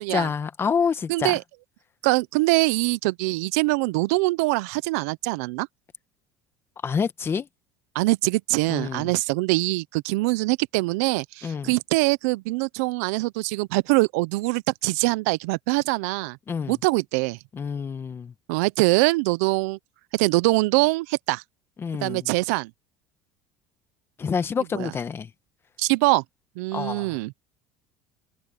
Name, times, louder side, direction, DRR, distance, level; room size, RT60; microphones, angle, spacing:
voice 1, 0.0-1.4 6.8-7.5 8.7-9.1 11.4-11.7 16.5-16.8 17.5-18.3 21.8-22.3 24.2-25.3 26.7-27.2, left 6 dB, 30° left, 1.7 m, -27 dB
voice 2, 1.1-1.4 2.0-5.7 7.9-16.4 16.7-17.4 18.5-19.8 20.1-21.4 22.0-22.7 24.7-24.9 25.8-26.2 26.6-27.3, right 23 dB, 85° right, 0.5 m, -23 dB
supercardioid pair, 110°, 8 cm